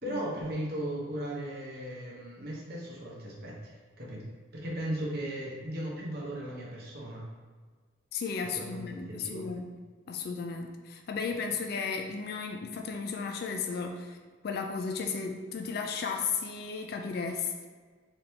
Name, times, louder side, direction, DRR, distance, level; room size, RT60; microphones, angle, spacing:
voice 1, 0.0-3.7 4.0-4.2 4.5-7.2 8.6-9.4, right 1 dB, 50° right, -4 dB, 0.8 m, -37 dB
voice 2, 8.1-9.7 10.1-14.2 14.4-17.7, left 5 dB, 50° left, 4 dB, 0.3 m, -34 dB
4.0 x 3.4 x 2.8 m, 1.5 s
head